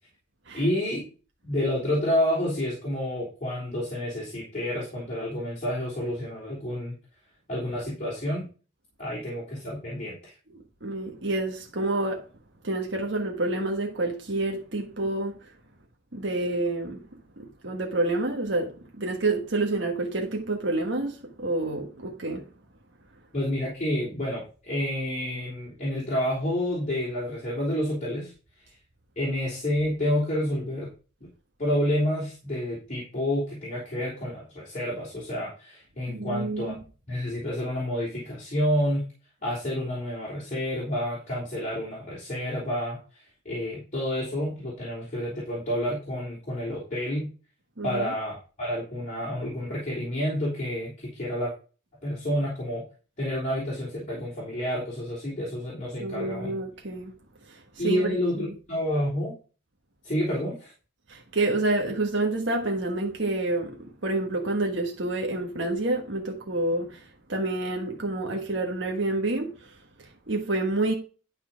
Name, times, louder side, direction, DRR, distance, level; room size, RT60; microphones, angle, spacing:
voice 1, 0.5-1.0 1.4-7.0 7.5-8.5 9.0-10.3 23.3-28.3 29.2-30.9 31.6-36.7 37.1-39.1 39.4-47.3 47.8-51.5 52.0-52.8 53.2-56.6 57.8-59.3 60.0-60.7, left 1 dB, 35° left, 3.6 m, -29 dB
voice 2, 10.5-12.2 12.6-15.4 16.1-17.0 17.4-22.5 36.1-36.7 47.8-48.1 56.0-57.1 57.5-58.5 61.1-70.9, right 2 dB, 65° right, 1.5 m, -28 dB
12.0 x 4.3 x 5.1 m
head